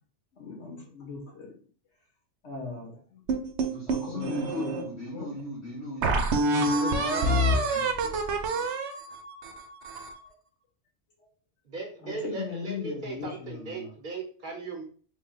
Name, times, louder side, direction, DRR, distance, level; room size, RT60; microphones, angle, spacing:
voice 1, 0.3-1.5 2.4-3.2 3.9-5.3 11.2-11.3 12.0-13.9, left 5 dB, 80° left, -1 dB, 1.5 m, -38 dB
sound 1, 3.3-4.8 5.4-5.5 6.0-10.2, right 1 dB, 80° right, 0.9 m, -27 dB
voice 2, 3.7-8.7, left 1 dB, 55° left, -5 dB, 1.9 m, -39 dB
voice 3, 11.7-14.8, right 4 dB, 50° right, 1 dB, 0.8 m, -38 dB
3.7 x 2.2 x 3.8 m, 0.42 s
omnidirectional pair, 1.2 m